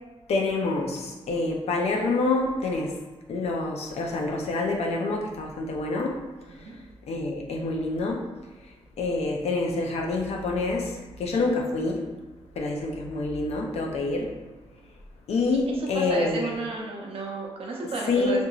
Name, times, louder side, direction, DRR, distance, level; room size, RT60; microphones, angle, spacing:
voice 1, 0.3-2.9 3.3-6.2 7.1-8.3 9.0-12.1 12.6-14.3 15.3-16.5 18.1-18.4, left 3 dB, 85° left, 0 dB, 0.5 m, -27 dB
voice 2, 15.5-18.4, right 3 dB, 65° right, -2 dB, 0.6 m, -32 dB
2.8 x 2.6 x 2.4 m, 1.2 s
wide cardioid pair, 165°, 10 cm